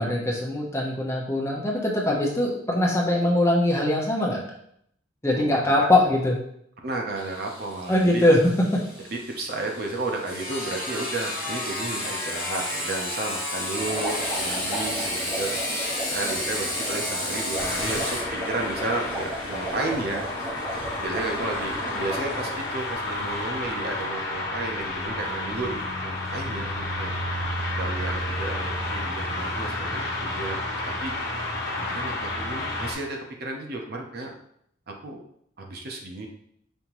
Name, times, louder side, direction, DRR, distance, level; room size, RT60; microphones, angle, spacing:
voice 1, 0.0-4.4 5.2-6.4 7.9-8.8, left 1 dB, 15° left, -3 dB, 0.8 m, -22 dB
voice 2, 5.3-5.9 6.8-8.2 9.1-15.5 16.1-20.3 21.0-27.1 27.7-31.1 31.7-34.3 34.9-35.2 35.6-36.3, right 2 dB, 50° right, 1 dB, 0.7 m, -33 dB
Sawing, 7.2-22.6, left 1 dB, 5° right, 1.7 m, -32 dB
sound 1, 13.8-22.5, equal, 25° right, 1.3 m, -35 dB
sound 2, 17.6-32.9, left 1 dB, 55° left, 1.1 m, -31 dB
5.3 x 2.8 x 3.0 m, 0.70 s
head